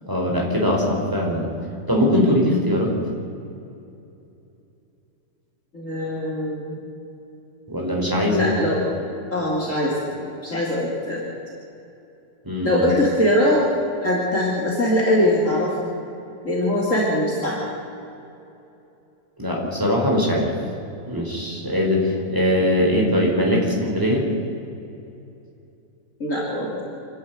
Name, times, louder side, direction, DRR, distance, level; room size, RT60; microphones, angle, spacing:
voice 1, 0.0-1.5 1.9-2.9 7.7-8.5 12.4-12.9 19.4-20.5 21.0-24.2, left 1 dB, 10° right, -2 dB, 4.3 m, -21 dB
voice 2, 5.7-6.7 8.3-8.8 9.3-9.9 10.4-11.2 12.6-13.6 14.0-15.7 16.4-17.6 26.2-26.8, left 1 dB, 45° left, -4 dB, 3.4 m, -21 dB
27.0 x 10.5 x 9.3 m, 2.8 s
omnidirectional pair, 2.0 m